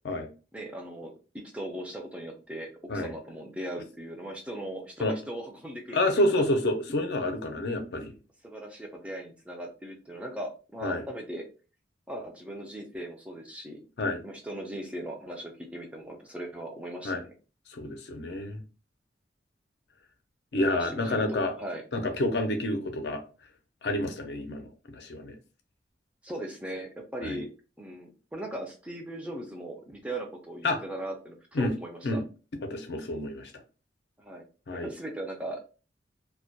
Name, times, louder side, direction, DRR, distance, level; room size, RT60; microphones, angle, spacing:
voice 1, 0.5-1.1 1.5-6.0 6.3-6.4 8.4-11.5 12.1-13.8 14.2-17.3 20.8-21.8 26.2-27.5 27.8-32.2 34.2-34.4 34.8-35.6, right 1 dB, 5° right, 0.3 m, -38 dB
voice 2, 5.9-8.1 10.8-11.0 14.0-14.2 17.0-17.2 17.7-18.6 20.5-21.5 21.9-23.2 23.8-25.4 27.2-27.4 30.6-30.8 31.5-31.7 32.0-32.2 32.6-33.5 34.7-34.9, left 1 dB, 70° left, 0.5 m, -28 dB
2.2 x 2.1 x 2.6 m
head